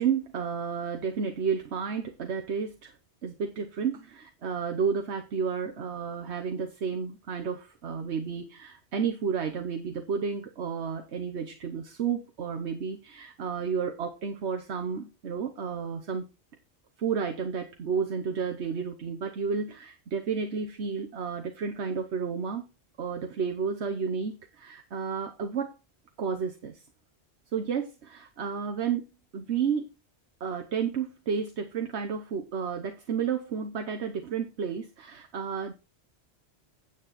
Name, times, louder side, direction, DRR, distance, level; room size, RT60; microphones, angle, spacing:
voice 1, 0.0-2.9 3.2-16.3 17.0-22.7 23.0-25.7 26.2-26.8 27.5-29.1 29.3-29.9 30.4-35.7, right 6 dB, 85° right, 1.3 m, -31 dB
9.3 x 8.1 x 4.2 m
omnidirectional pair, 1.1 m